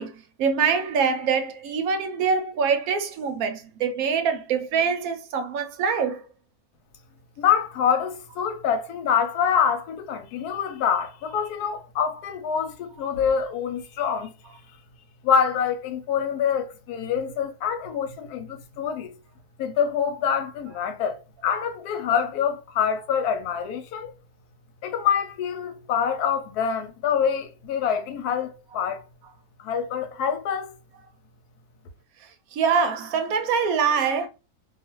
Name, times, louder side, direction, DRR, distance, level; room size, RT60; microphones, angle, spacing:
voice 1, 0.0-6.3 32.5-34.3, right 6 dB, 75° right, 1.0 m, -24 dB
voice 2, 7.4-14.3 15.2-19.1 19.6-24.1 24.8-29.0 29.6-30.7, left 7 dB, 85° left, 1.2 m, -25 dB
2.5 x 2.4 x 2.9 m
omnidirectional pair, 1.6 m